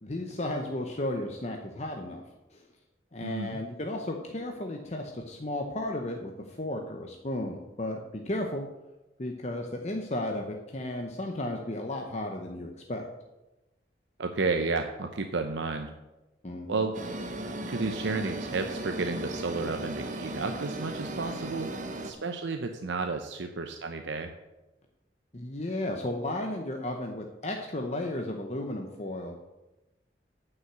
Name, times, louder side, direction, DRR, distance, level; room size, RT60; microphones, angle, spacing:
voice 1, 0.0-2.2 2.5-2.6 3.1-8.7 9.2-13.1 16.4-16.9 25.3-29.4, left 1 dB, 40° left, 2 dB, 0.9 m, -34 dB
voice 2, 3.2-3.6 14.2-15.9 16.7-16.9 17.7-21.7 22.0-24.3, right 3 dB, 85° right, 6 dB, 0.7 m, -32 dB
sound 1, 16.9-22.1, right 1 dB, 45° right, 0.9 m, -36 dB
9.4 x 5.7 x 8.0 m, 1.0 s
head